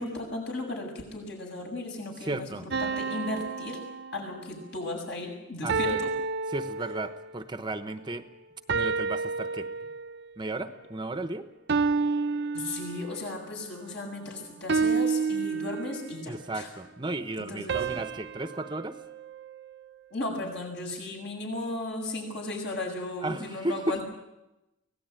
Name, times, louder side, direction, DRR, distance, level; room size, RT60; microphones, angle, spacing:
voice 1, 0.0-3.8 4.1-6.1 12.5-16.7 17.4-17.9 20.1-24.0, left 2 dB, 60° left, 2 dB, 7.4 m, -35 dB
voice 2, 2.2-2.7 5.6-6.0 6.5-8.2 8.7-9.7 10.4-11.5 16.3-19.0 23.2-24.0, right 2 dB, 25° right, 9 dB, 1.0 m, -34 dB
sound 1, 2.7-4.6 5.7-7.3 8.7-10.3 11.7-13.4 14.7-16.3 17.7-20.0, right 4 dB, 60° right, 0.8 m, -30 dB
24.5 x 17.5 x 9.2 m, 0.94 s
head